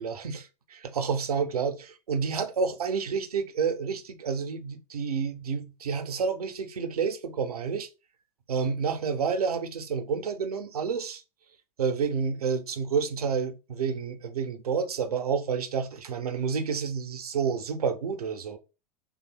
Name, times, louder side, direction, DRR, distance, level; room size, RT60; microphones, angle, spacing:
voice 1, 0.0-7.9 8.5-11.2 11.8-18.6, right 6 dB, 70° right, 0.7 m, -29 dB
3.2 x 2.3 x 4.3 m
figure-of-eight pair, 90°, 20 cm